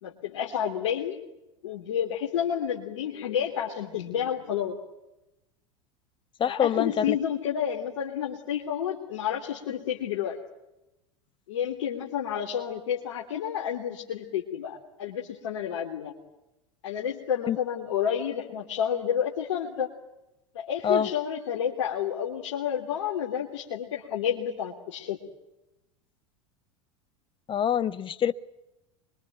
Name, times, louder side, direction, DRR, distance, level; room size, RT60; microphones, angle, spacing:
voice 1, 0.0-1.2 1.6-4.8 6.5-10.4 11.5-16.1 16.8-19.9 20.5-25.2, left 9 dB, 75° left, 3.2 m, -30 dB
voice 2, 6.4-7.2 17.5-17.6 20.8-21.1 27.5-28.3, left 8 dB, 30° left, 1.3 m, -25 dB
26.0 x 23.5 x 9.3 m
hypercardioid pair, 85°, 16 cm